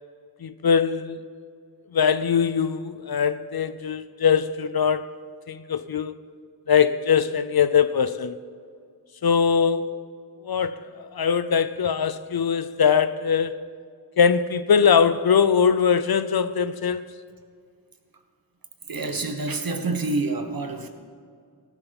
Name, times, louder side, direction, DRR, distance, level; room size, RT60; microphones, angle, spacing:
voice 1, 0.4-1.2 1.9-5.1 5.5-6.2 6.7-8.4 9.2-10.0 10.4-13.6 14.2-17.1, left 7 dB, 60° left, 0.6 m, -22 dB
voice 2, 18.9-20.9, right 3 dB, 55° right, 1.5 m, -27 dB
18.0 x 11.5 x 4.2 m
wide cardioid pair, 65°, 41 cm